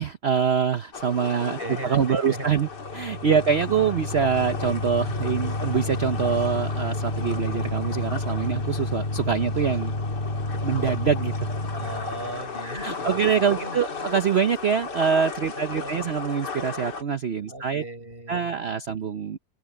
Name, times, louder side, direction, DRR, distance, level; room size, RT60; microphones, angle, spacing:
voice 1, 0.0-2.7 2.9-9.9 10.5-11.5 12.6-17.8 18.3-19.4, right 7 dB, 55° right, 0.7 m, -25 dB
sound 1, 0.9-17.0, left 4 dB, 65° left, 3.0 m, -36 dB
voice 2, 1.6-2.7 3.4-3.5 3.8-4.0 11.7-14.1 15.5-16.2 17.5-18.8, right 2 dB, 30° right, 7.2 m, -38 dB
sound 2, 2.7-12.4, left 2 dB, 30° left, 3.2 m, -30 dB
omnidirectional pair, 2.0 m